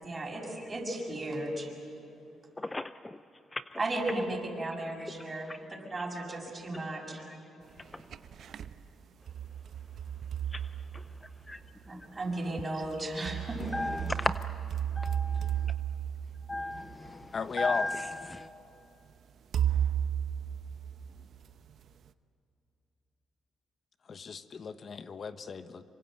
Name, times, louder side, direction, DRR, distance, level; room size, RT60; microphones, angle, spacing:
voice 1, 0.0-1.7 3.8-7.2 11.9-13.6, right 2 dB, 25° right, 0 dB, 6.8 m, -35 dB
sound 1, 7.8-8.7 9.3-11.7 12.8-17.2 18.1-18.2 19.5-21.4, right 9 dB, 65° right, 0.9 m, -34 dB
voice 2, 13.7-14.3 15.0-15.6 16.5-17.2 17.6-18.5, left 2 dB, 15° left, 12 dB, 0.5 m, -34 dB
voice 3, 17.3-17.9 24.0-25.8, left 5 dB, 45° left, 11 dB, 1.2 m, -35 dB
26.5 x 24.5 x 7.9 m, 2.9 s
cardioid pair, 90°, 0 cm